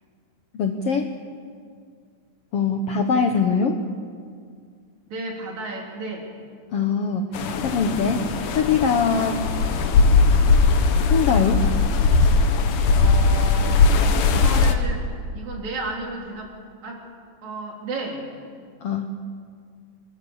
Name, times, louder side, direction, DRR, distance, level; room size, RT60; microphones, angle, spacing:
voice 1, 0.5-1.1 2.5-3.8 6.7-7.3 7.6-8.2 8.5-9.4 11.1-11.7 18.8-19.1, left 5 dB, 85° left, 5 dB, 1.3 m, -22 dB
voice 2, 5.1-6.3 13.0-13.8 14.2-15.1 15.3-16.5 16.8-17.0 17.4-18.2, right 2 dB, 50° right, 0 dB, 4.6 m, -33 dB
sound 1, 7.3-14.8, left 4 dB, 65° left, 2.6 m, -19 dB
26.5 x 21.0 x 7.2 m, 2.1 s
omnidirectional pair, 4.3 m